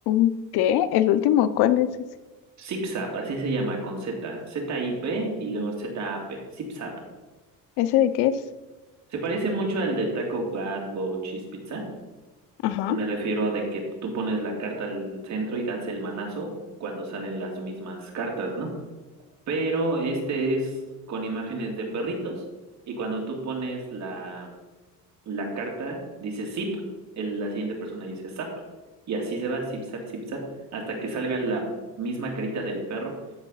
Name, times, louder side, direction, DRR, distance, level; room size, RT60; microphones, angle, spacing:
voice 1, 0.1-1.9 7.8-8.4 12.6-13.0, left 11 dB, 85° left, 13 dB, 0.7 m, -21 dB
voice 2, 2.6-6.9 9.1-11.8 12.9-16.5 16.8-18.7 19.5-20.8 21.1-22.4 22.9-24.5 25.3-26.8 27.2-28.5 29.1-30.4 30.7-31.6 32.0-33.1, right 2 dB, 50° right, 0 dB, 2.6 m, -30 dB
13.5 x 4.6 x 5.7 m, 1.2 s
cardioid pair, 130°, 37 cm